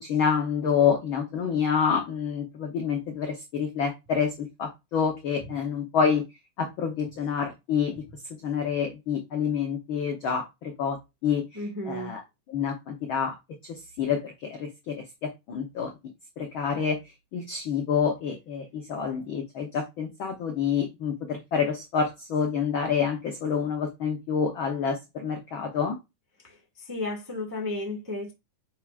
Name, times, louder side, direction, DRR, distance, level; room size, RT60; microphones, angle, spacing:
voice 1, 0.0-6.2 6.6-8.0 8.4-11.0 11.2-11.6 11.9-12.2 12.5-13.4 13.6-15.9 16.4-17.0 17.3-26.0, left 6 dB, 85° left, 1.1 m, -28 dB
voice 2, 11.5-12.2 26.4-28.3, left 2 dB, 15° right, 0.6 m, -33 dB
9.1 x 4.7 x 2.5 m
omnidirectional pair, 3.6 m